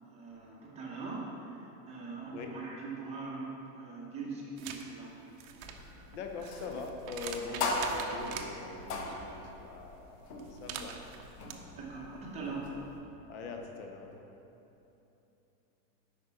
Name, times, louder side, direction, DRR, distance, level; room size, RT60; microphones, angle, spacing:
voice 1, 0.1-5.2 11.4-12.7, right 3 dB, 15° right, -4 dB, 0.8 m, -42 dB
sound 1, 4.6-4.8 5.3-8.5 10.4-11.5, right 8 dB, 60° right, 0.7 m, -44 dB
sound 2, 5.6-13.0, left 2 dB, 75° left, 1.3 m, -40 dB
voice 2, 6.1-10.2 10.5-10.9 13.3-14.2, left 4 dB, 45° left, 3 dB, 0.9 m, -42 dB
8.6 x 5.2 x 5.6 m, 3.0 s
supercardioid pair, 180°, 47 cm